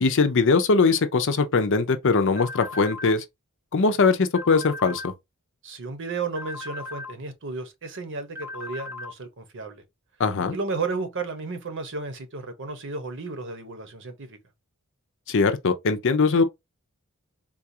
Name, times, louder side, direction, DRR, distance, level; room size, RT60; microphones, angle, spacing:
voice 1, 0.0-3.2 3.7-5.0 10.2-10.6 15.3-16.4, left 4 dB, 60° left, 0.6 m, -21 dB
sound 1, 2.4-3.1 4.4-5.1 6.4-7.1 8.4-9.1, left 2 dB, 10° right, 0.6 m, -37 dB
voice 2, 5.6-9.8 10.5-14.4, right 4 dB, 60° right, 0.9 m, -33 dB
3.9 x 2.4 x 2.7 m
head